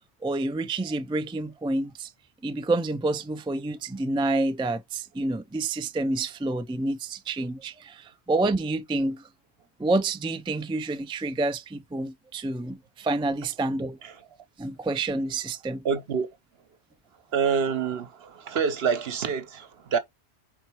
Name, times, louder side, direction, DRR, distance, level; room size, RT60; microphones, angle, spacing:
voice 1, 0.2-2.1 2.4-9.2 9.8-14.0 14.6-15.8, right 2 dB, 10° right, 0.3 m, -28 dB
voice 2, 15.8-16.3 17.3-20.0, right 6 dB, 70° right, 1.1 m, -27 dB
4.6 x 4.5 x 4.5 m
omnidirectional pair, 1.1 m